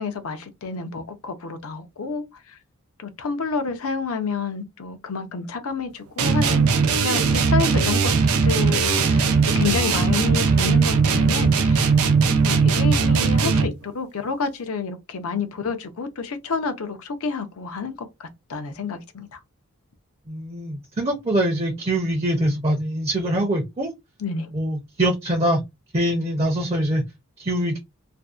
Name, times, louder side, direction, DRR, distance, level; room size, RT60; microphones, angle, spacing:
voice 1, 0.0-2.6 3.0-8.1 8.4-11.9 12.3-19.4 24.2-24.5, left 4 dB, 75° left, 0.5 m, -29 dB
sound 1, 6.2-13.8, right 5 dB, 80° right, 0.5 m, -19 dB
voice 2, 20.3-23.9 24.5-25.6 25.9-27.0 27.4-27.8, right 1 dB, 25° right, 0.5 m, -23 dB
2.5 x 2.1 x 2.3 m
head